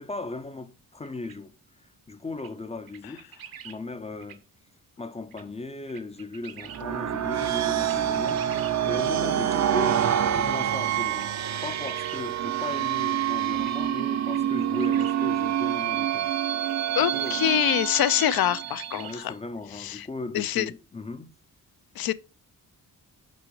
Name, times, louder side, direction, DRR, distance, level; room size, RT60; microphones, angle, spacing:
voice 1, 0.0-3.3 3.6-4.4 5.0-8.5 8.8-16.6 17.1-17.4 18.9-21.3, left 2 dB, 20° left, 0.3 m, -37 dB
sound 1, 1.0-1.4 2.4-2.5 2.9-3.8 4.2-4.4 5.3-5.4 5.9-6.8 7.4-7.5 7.8-8.8 9.9-10.0 10.6-10.7 11.1-12.2 13.1-13.2 13.6-14.0 14.3-15.2 16.6-16.7 17.2-17.3 17.8-18.0 18.2-19.2, right 9 dB, 80° right, 0.9 m, -45 dB
sound 2, 6.7-19.2, right 10 dB, 50° right, 0.5 m, -27 dB
voice 2, 17.0-19.3 19.7-20.1 20.3-20.7 22.0-22.1, left 12 dB, 80° left, 0.5 m, -25 dB
6.1 x 5.7 x 3.1 m
wide cardioid pair, 145°, 35 cm